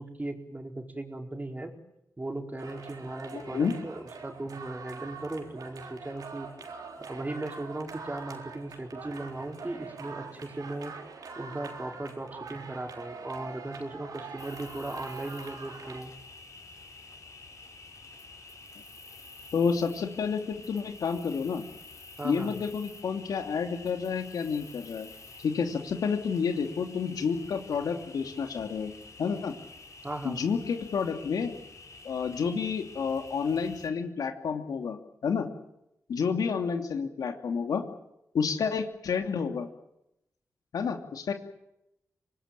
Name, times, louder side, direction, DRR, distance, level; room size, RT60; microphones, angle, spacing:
voice 1, 0.0-1.7 2.2-6.5 7.0-10.9 11.4-16.1 22.2-22.6 30.0-30.4, right 2 dB, 25° right, 3 dB, 4.5 m, -37 dB
sound 1, 2.6-16.0, right 4 dB, 85° right, 3.9 m, -44 dB
voice 2, 3.3-3.7 19.5-21.6 22.2-25.1 25.4-28.9 29.2-29.6 30.2-31.5 32.0-35.5 36.1-37.8 38.3-39.7 40.7-41.3, left 6 dB, 85° left, 5 dB, 2.8 m, -30 dB
Cricket, 14.4-33.9, left 3 dB, 60° left, 5.9 m, -49 dB
25.5 x 20.0 x 9.1 m, 0.84 s
cardioid pair, 55°, 6 cm